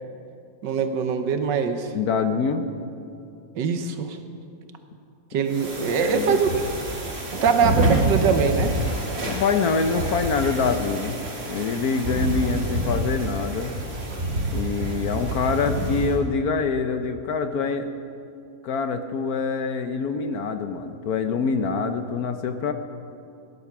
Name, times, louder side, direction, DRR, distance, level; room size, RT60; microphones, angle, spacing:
voice 1, 0.6-1.9 3.5-4.2 5.3-6.6 7.4-8.7, right 6 dB, 75° right, 7 dB, 1.6 m, -22 dB
voice 2, 1.9-2.7 6.0-6.4 7.6-7.7 9.3-13.7 14.5-17.9 18.6-22.7, left 5 dB, 65° left, 8 dB, 1.1 m, -25 dB
sound 1, 5.5-16.2, right 1 dB, 35° right, 1.9 m, -27 dB
17.5 x 11.0 x 6.0 m, 2.5 s
omnidirectional pair, 2.0 m